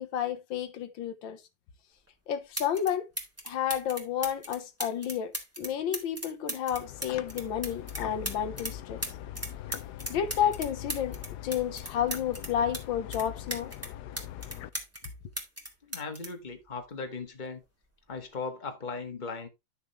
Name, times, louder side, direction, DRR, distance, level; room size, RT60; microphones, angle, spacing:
voice 1, 0.0-1.4 2.3-3.1 3.5-5.3 5.6-9.0 10.1-11.2 11.4-13.7, left 9 dB, 90° left, 1.8 m, -31 dB
sound 1, 2.1-2.2 2.5-2.9 3.2-8.7 9.0-12.8 13.1-15.1 15.4-17.2 18.1-18.3, right 1 dB, 10° right, 2.2 m, -37 dB
sound 2, 6.7-14.7, left 12 dB, 70° left, 1.1 m, -42 dB
voice 2, 15.8-17.6 18.1-19.5, left 4 dB, 25° left, 1.6 m, -38 dB
11.5 x 6.5 x 3.1 m
omnidirectional pair, 2.0 m